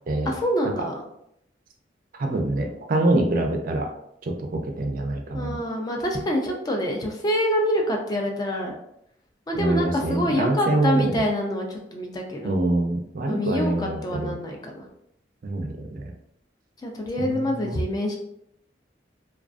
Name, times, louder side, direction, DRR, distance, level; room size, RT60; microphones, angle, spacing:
voice 1, 0.3-1.0 5.3-8.8 9.5-12.5 13.3-14.8 16.8-18.2, equal, 20° left, 1 dB, 0.4 m, -26 dB
voice 2, 2.2-3.9 4.2-5.6 9.5-11.2 12.4-14.3 15.4-16.1 17.2-17.7, right 2 dB, 50° right, 3 dB, 0.4 m, -25 dB
2.3 x 2.3 x 2.4 m, 0.76 s
head